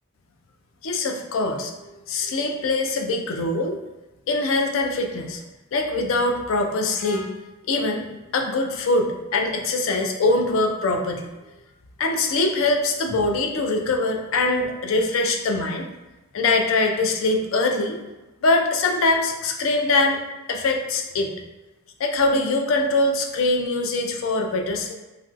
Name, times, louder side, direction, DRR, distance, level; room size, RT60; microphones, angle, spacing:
voice 1, 0.8-3.8 4.3-5.4 5.7-7.3 7.7-8.1 8.3-11.3 12.0-15.9 16.3-18.0 18.4-20.2 20.5-21.4 22.0-24.9, left 2 dB, 65° left, 2 dB, 0.4 m, -23 dB
3.0 x 2.5 x 2.4 m, 1.1 s
head